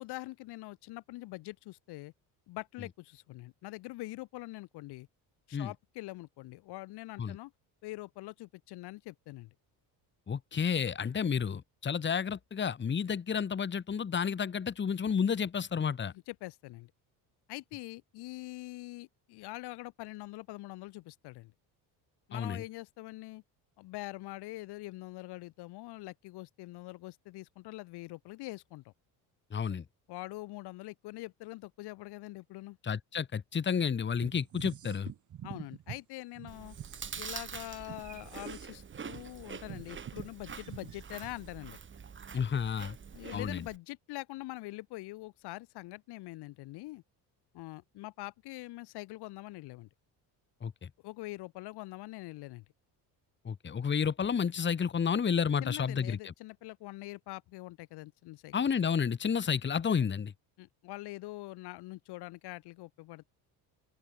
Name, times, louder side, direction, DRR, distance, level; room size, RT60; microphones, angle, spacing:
voice 1, 0.0-2.1 2.5-5.1 5.5-7.5 7.8-9.5 16.3-16.9 17.5-21.5 22.3-23.4 23.8-28.9 30.1-32.8 35.4-36.8 37.2-41.8 43.1-47.0 47.5-49.9 51.0-52.7 55.6-58.5 60.6-63.2, left 19 dB, 80° left, 3.6 m, -44 dB
voice 2, 10.3-16.1 22.3-22.6 29.5-29.8 32.8-35.1 42.3-43.0 43.3-43.6 50.6-50.9 53.5-56.3 58.5-60.3, left 7 dB, 30° left, 2.0 m, -31 dB
sound 1, 34.1-36.0 36.4-41.5, right 10 dB, 50° right, 5.8 m, -47 dB
Chewing mastication, 36.5-43.8, right 6 dB, 30° right, 3.2 m, -45 dB
open air
cardioid pair, 125°, 39 cm